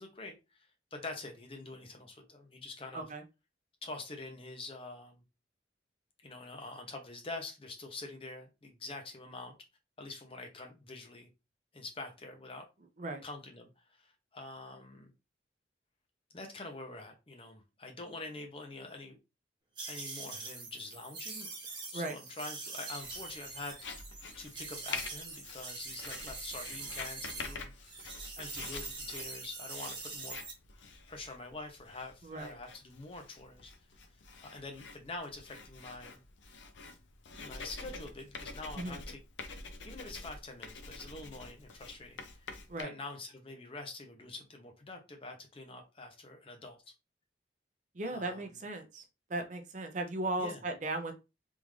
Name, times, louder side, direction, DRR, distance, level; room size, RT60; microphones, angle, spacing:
voice 1, 0.0-3.1 3.8-5.2 6.2-9.5 10.0-11.3 11.7-12.7 13.2-15.1 16.3-19.2 19.8-21.5 21.9-24.0 24.4-30.4 31.1-33.7 34.4-36.2 37.3-39.2 39.5-39.6 39.8-42.5 42.8-46.8 48.1-48.5 50.4-50.6, left 2 dB, 30° left, 0.7 m, -46 dB
sound 1, 19.8-27.6 27.8-30.5, right 3 dB, 25° right, 1.1 m, -44 dB
Writing, 23.0-42.8, left 4 dB, 80° left, 0.6 m, -47 dB
voice 2, 32.2-32.5 38.8-39.0 42.7-42.9 48.0-49.0 49.3-51.1, right 2 dB, 40° right, 0.6 m, -36 dB
3.6 x 2.5 x 3.2 m
head